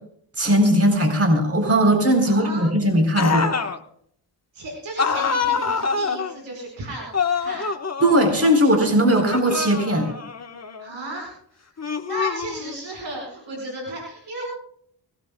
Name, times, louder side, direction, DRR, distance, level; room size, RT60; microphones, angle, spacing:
voice 1, 0.4-3.5 8.0-10.1, equal, 30° right, 4 dB, 4.0 m, -18 dB
voice 2, 2.2-2.6 4.5-7.1 7.4-7.7 10.8-11.3 12.0-14.4, right 2 dB, 90° right, 0 dB, 5.3 m, -34 dB
sound 1, 3.2-3.8 5.0-6.3 7.1-8.6 9.1-10.9 11.8-12.9, left 5 dB, 35° left, 1.4 m, -26 dB
24.0 x 17.5 x 2.3 m, 0.63 s
cardioid pair, 65°, 44 cm